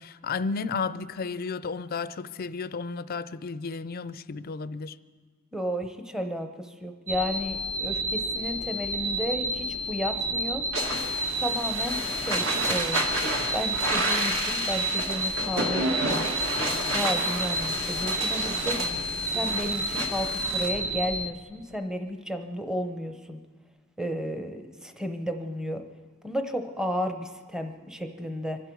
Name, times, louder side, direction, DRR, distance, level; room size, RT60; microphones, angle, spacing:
voice 1, 0.0-5.0, left 4 dB, 45° left, 0.4 m, -33 dB
voice 2, 5.5-10.6 11.4-13.0 13.5-16.2 16.9-18.8 19.3-23.4 24.0-25.8 26.2-28.6, equal, 5° right, 0.8 m, -33 dB
sound 1, 7.1-21.3, equal, 45° right, 1.1 m, -30 dB
sound 2, 10.7-20.7, right 2 dB, 65° right, 2.4 m, -30 dB
25.5 x 12.0 x 4.6 m
head